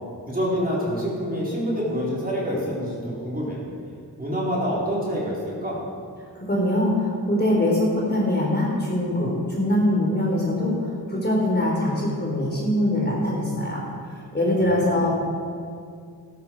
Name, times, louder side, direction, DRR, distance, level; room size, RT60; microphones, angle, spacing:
voice 1, 0.3-3.6 4.2-5.8 14.7-15.1, equal, 20° right, -5 dB, 4.0 m, -27 dB
voice 2, 6.5-10.7 11.1-13.8 14.3-15.1, left 1 dB, 25° left, -3 dB, 3.9 m, -22 dB
13.5 x 12.5 x 4.7 m, 2.3 s
cardioid pair, 75°, 39 cm